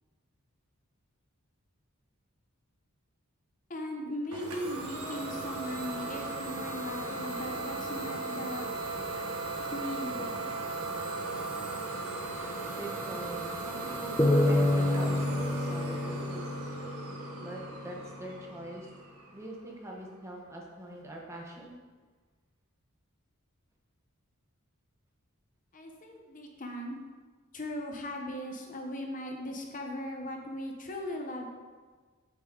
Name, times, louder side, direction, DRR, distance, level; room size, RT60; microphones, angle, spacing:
voice 1, 3.7-8.7 9.6-10.5 25.7-27.0 27.5-31.5, left 1 dB, 35° left, 2 dB, 0.9 m, -38 dB
Idling / Domestic sounds home sounds, 4.3-19.8, right 3 dB, 90° right, 1.3 m, -37 dB
voice 2, 12.8-16.4 17.4-18.9 19.3-21.7, right 1 dB, 15° right, -1 dB, 1.0 m, -43 dB
sound 1, 14.2-17.6, left 1 dB, 15° left, 0.6 m, -28 dB
8.1 x 7.4 x 3.9 m, 1.4 s
head